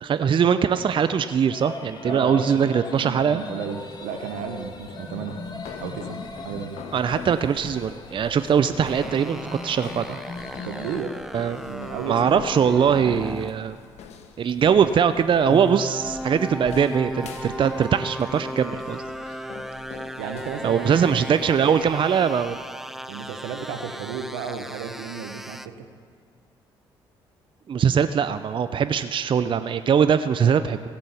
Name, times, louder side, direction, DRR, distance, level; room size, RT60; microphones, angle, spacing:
voice 1, 0.0-3.4 6.9-10.2 11.3-11.6 12.1-13.8 14.4-19.4 20.6-22.6 27.7-30.9, right 7 dB, 45° right, 11 dB, 0.5 m, -21 dB
sound 1, 1.5-11.0, left 3 dB, 40° left, 1.8 m, -39 dB
voice 2, 2.1-5.4 5.8-6.2 6.4-6.8 10.6-11.2 11.6-13.2 20.2-21.7 23.1-25.9, right 7 dB, 80° right, 6 dB, 0.9 m, -34 dB
sound 2, 3.4-22.6, left 7 dB, 65° left, 1.2 m, -45 dB
sound 3, 8.8-13.5 15.5-25.7, equal, 5° right, 0.7 m, -36 dB
16.0 x 7.6 x 6.9 m, 2.2 s
hypercardioid pair, 50°, 12 cm